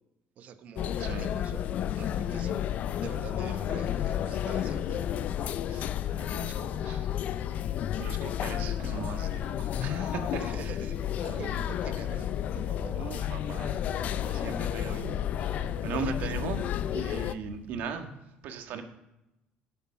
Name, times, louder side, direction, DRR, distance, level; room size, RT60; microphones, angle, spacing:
voice 1, 0.4-1.7 2.0-2.7 3.0-5.0 10.3-13.0 15.9-16.3, right 8 dB, 50° right, 9 dB, 1.0 m, -45 dB
sound 1, 0.8-17.3, left 10 dB, 50° left, 0.5 m, -31 dB
voice 2, 5.7-7.1 8.0-10.7 11.2-11.6 12.9-13.8 14.1-16.6 16.9-18.1 18.4-18.8, right 6 dB, 65° right, 6 dB, 1.5 m, -39 dB
sound 2, 10.7-17.8, equal, 10° left, 3.0 m, -48 dB
16.0 x 7.1 x 5.6 m, 0.91 s
cardioid pair, 145°, 3 cm